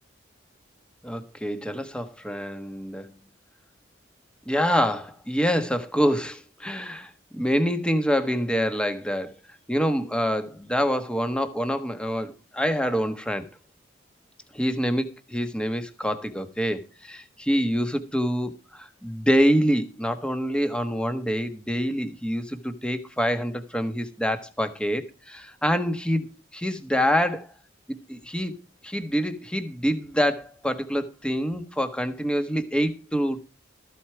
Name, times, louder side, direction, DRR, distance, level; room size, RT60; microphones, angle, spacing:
voice 1, 1.0-3.1 4.5-9.3 9.7-13.5 14.5-27.5 27.9-28.5 28.8-33.4, equal, 5° left, 1.4 m, -26 dB
14.0 x 8.4 x 4.6 m
head